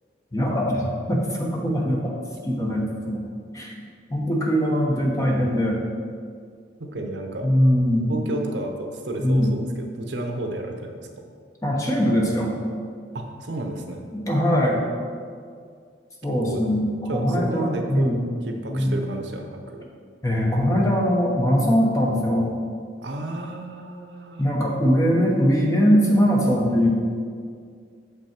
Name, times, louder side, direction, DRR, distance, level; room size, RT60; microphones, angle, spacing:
voice 1, 0.3-2.1 2.4-3.2 3.5-3.7 4.1-5.8 7.4-8.1 9.2-9.5 11.6-12.5 14.1-14.8 16.2-18.2 18.7-19.0 20.2-22.5 24.4-26.9, equal, 15° left, -2 dB, 0.9 m, -21 dB
voice 2, 6.8-7.5 8.1-9.7 9.9-11.3 13.1-14.1 16.3-16.6 17.1-19.8 23.0-24.4, right 1 dB, 75° right, 3 dB, 0.8 m, -32 dB
7.0 x 5.5 x 4.4 m, 2.1 s
head